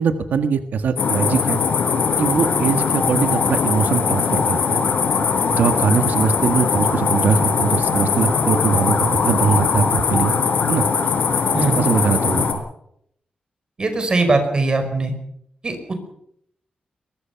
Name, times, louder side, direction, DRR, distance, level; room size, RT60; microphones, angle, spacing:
voice 1, 0.0-1.6 2.2-4.8 5.5-10.3 10.7-10.9 11.8-12.6, right 6 dB, 85° right, 8 dB, 1.6 m, -21 dB
sound 1, 1.0-12.5, left 5 dB, 75° left, 4.5 m, -20 dB
voice 2, 13.8-15.1 15.6-15.9, right 3 dB, 30° right, 7 dB, 5.0 m, -20 dB
23.0 x 21.5 x 5.8 m, 0.70 s
wide cardioid pair, 175°, 3 cm